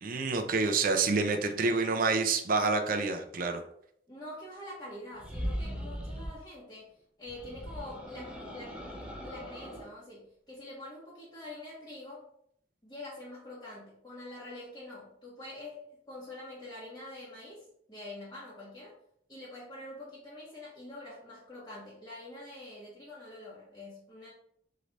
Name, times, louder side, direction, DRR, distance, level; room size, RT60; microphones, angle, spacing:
voice 1, 0.0-3.6, right 4 dB, 55° right, 5 dB, 0.6 m, -28 dB
voice 2, 4.1-6.9 7.2-8.8 9.2-12.3 12.8-19.0 19.3-24.3, left 1 dB, 20° left, -9 dB, 1.3 m, -45 dB
sound 1, 5.1-6.4 7.3-9.9, equal, 5° right, 0.7 m, -39 dB
3.7 x 3.3 x 4.0 m, 0.68 s
head